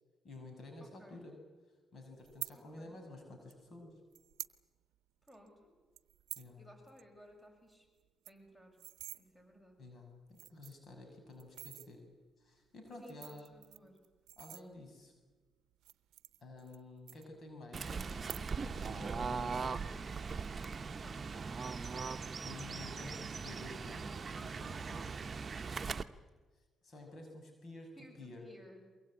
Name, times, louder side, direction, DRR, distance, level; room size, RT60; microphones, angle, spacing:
voice 1, 0.2-1.3 1.9-3.9 6.4-6.6 9.8-12.0 12.4-13.5 14.4-15.1 16.4-19.8 22.4-24.1 24.4-25.0 26.8-27.9 28.2-28.4, left 2 dB, 55° left, 4 dB, 6.2 m, -51 dB
voice 2, 0.8-1.2 2.5-3.0 5.3-5.7 6.6-7.9 8.3-8.8 9.1-9.8 13.0-14.0 20.9-21.6 25.8-26.1 28.0-28.8, equal, 10° left, 4 dB, 7.1 m, -59 dB
sound 1, 2.2-2.5 3.5-3.6 4.1-4.6 4.9-5.0 5.3-5.5 6.0-6.5 6.9-7.0 7.3-7.4 7.7-7.8 8.1-9.2 9.9-10.0 10.3-10.9 11.4-11.9 12.9-15.1 15.7-16.8 17.1-17.7 18.1-18.7 19.0-19.4, right 15 dB, 85° right, 0.7 m, -48 dB
Fowl / Bird, 17.7-26.0, right 5 dB, 40° right, 1.0 m, -40 dB
23.0 x 22.0 x 8.8 m, 1.3 s
supercardioid pair, 70°, 0 cm